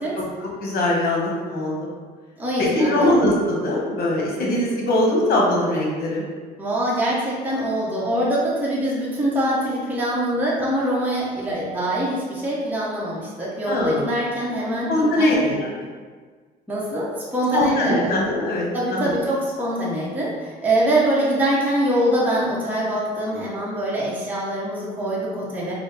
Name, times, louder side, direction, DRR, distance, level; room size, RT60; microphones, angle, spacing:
voice 1, 0.1-1.9 2.6-6.2 13.7-14.0 14.9-15.7 17.5-19.2, left 1 dB, 65° left, -3 dB, 1.1 m, -21 dB
voice 2, 2.4-3.1 6.6-15.7 16.7-18.1 18.7-25.7, right 1 dB, 10° right, -7 dB, 0.8 m, -24 dB
4.1 x 2.0 x 3.2 m, 1.5 s
cardioid pair, 110°, 17 cm